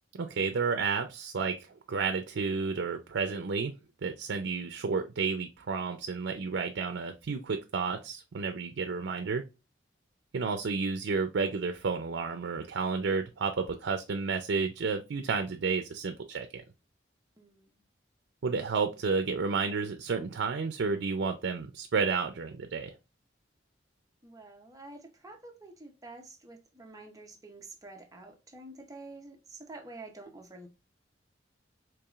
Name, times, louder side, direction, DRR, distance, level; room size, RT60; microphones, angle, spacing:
voice 1, 0.1-3.8 4.0-9.4 10.3-16.6 18.4-22.9, right 5 dB, 80° right, 0.5 m, -31 dB
voice 2, 17.4-17.8 24.2-30.7, right 2 dB, 20° right, 0.7 m, -48 dB
4.6 x 3.0 x 2.4 m
head